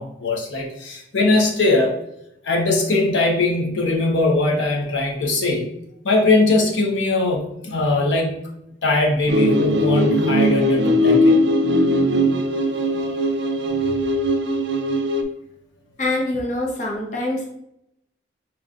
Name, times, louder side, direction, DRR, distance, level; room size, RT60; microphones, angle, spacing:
voice 1, 0.0-1.9 2.4-5.7 6.0-8.4 8.8-11.3 12.2-12.3 12.9-13.1 13.6-13.8, left 2 dB, 85° left, -1 dB, 0.9 m, -20 dB
sound 1, 9.3-15.2, equal, 65° right, 0.4 m, -19 dB
voice 2, 16.0-17.4, left 2 dB, 40° left, -1 dB, 0.8 m, -24 dB
5.1 x 3.1 x 2.5 m, 0.78 s
head